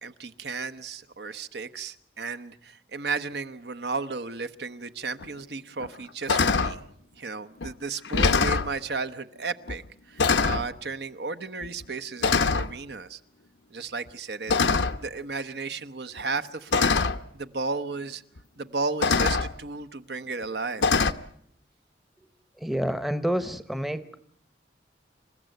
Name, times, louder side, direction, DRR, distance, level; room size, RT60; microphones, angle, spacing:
voice 1, 0.0-6.8 7.2-13.2 13.7-17.0 17.3-18.2 18.6-20.8, right 4 dB, 65° right, 10 dB, 1.0 m, -34 dB
sound 1, 5.2-5.3 5.8-6.0 6.3-6.8 7.6-7.7 8.0-8.7 9.7-9.9 10.2-10.7 11.6-11.9 12.2-12.7 14.5-15.1 16.2-16.3 16.7-17.2 18.4-18.5 19.0-19.5 20.8-21.1, left 4 dB, 85° left, 0.9 m, -23 dB
voice 2, 22.6-24.2, equal, ahead, 11 dB, 0.8 m, -28 dB
27.5 x 15.0 x 9.1 m, 0.69 s
head